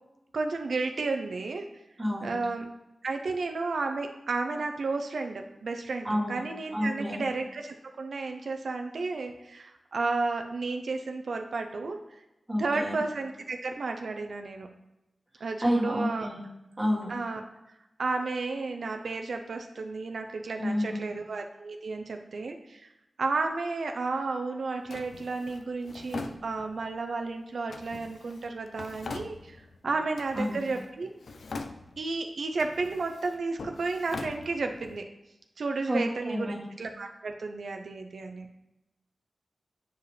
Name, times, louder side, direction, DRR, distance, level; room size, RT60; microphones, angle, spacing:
voice 1, 0.3-1.7 2.2-2.7 3.0-12.0 12.6-14.7 15.4-16.3 17.1-17.4 18.0-22.9 23.2-31.1 32.0-35.1 35.6-38.5, right 3 dB, 80° right, 4 dB, 0.4 m, -32 dB
voice 2, 2.0-2.4 6.0-6.4 6.7-7.2 12.5-12.9 15.6-16.5 16.8-17.1 20.6-21.0 30.4-30.7 35.9-36.7, equal, 20° right, -4 dB, 1.6 m, -29 dB
Drawer open or close, 24.9-27.0 27.7-29.8 30.1-30.9 31.2-32.2 32.5-35.0, left 3 dB, 85° left, 0.4 m, -42 dB
7.7 x 4.8 x 3.2 m, 0.94 s
wide cardioid pair, 95°, 0 cm